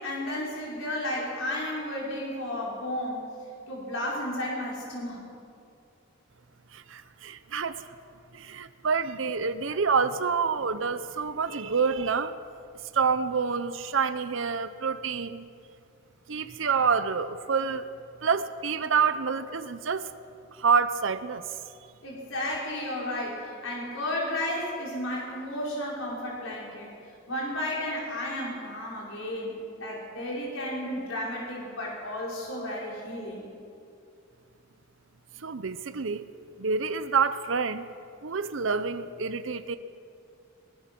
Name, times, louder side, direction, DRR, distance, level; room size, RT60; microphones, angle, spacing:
voice 1, 0.0-3.2 3.7-5.2 22.0-26.9 27.3-33.5, left 1 dB, 80° left, -4 dB, 5.0 m, -33 dB
voice 2, 6.7-7.8 8.3-12.3 12.9-15.5 16.3-17.9 18.2-20.1 20.5-21.4 35.4-36.3 36.6-37.9 38.2-39.8, right 5 dB, 70° right, 11 dB, 0.7 m, -27 dB
22.0 x 19.5 x 6.1 m, 2.5 s
head